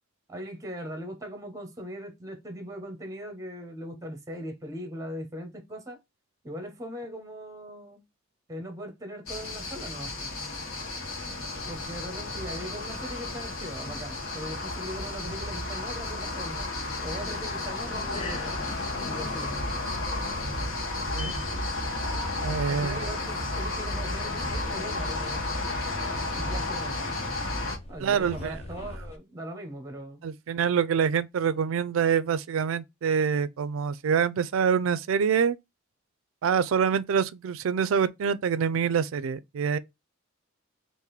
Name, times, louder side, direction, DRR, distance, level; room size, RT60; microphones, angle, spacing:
voice 1, 0.3-6.0 6.4-8.0 8.5-10.3 11.7-16.7 17.0-18.6 19.0-19.5 22.7-25.7 26.3-27.2 27.9-30.2, equal, 15° right, 0.9 m, -40 dB
sound 1, 9.3-27.8, left 2 dB, 85° left, 1.0 m, -32 dB
sound 2, 10.8-29.2, left 2 dB, 30° left, 0.5 m, -45 dB
voice 2, 22.4-23.1 28.0-28.6 30.2-35.6 36.4-39.8, right 7 dB, 70° right, 0.4 m, -26 dB
3.6 x 2.6 x 3.1 m
head